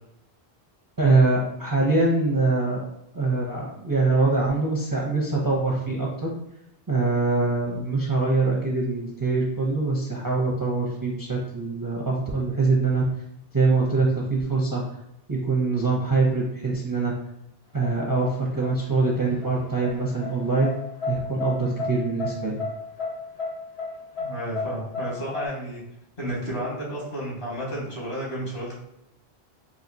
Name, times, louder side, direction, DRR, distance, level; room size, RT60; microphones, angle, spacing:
voice 1, 1.0-2.8 3.1-6.3 6.9-13.0 13.5-14.8 15.3-17.1 17.7-20.7 21.0-22.6, right 3 dB, 30° right, -3 dB, 0.4 m, -23 dB
sound 1, 17.8-25.5, left 4 dB, 85° left, 1.5 m, -33 dB
voice 2, 24.2-25.8 26.2-28.8, right 1 dB, 60° left, -5 dB, 1.6 m, -32 dB
4.2 x 2.7 x 2.6 m, 0.83 s
omnidirectional pair, 1.1 m